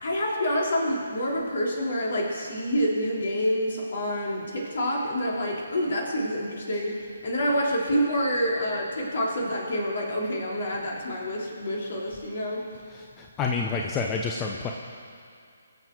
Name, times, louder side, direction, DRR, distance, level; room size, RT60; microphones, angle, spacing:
voice 1, 0.0-12.7, equal, 60° left, -2 dB, 3.4 m, -27 dB
voice 2, 13.2-14.7, left 4 dB, 20° left, 1 dB, 0.8 m, -28 dB
22.5 x 7.6 x 4.6 m, 2.4 s
figure-of-eight pair, 140°, 0 cm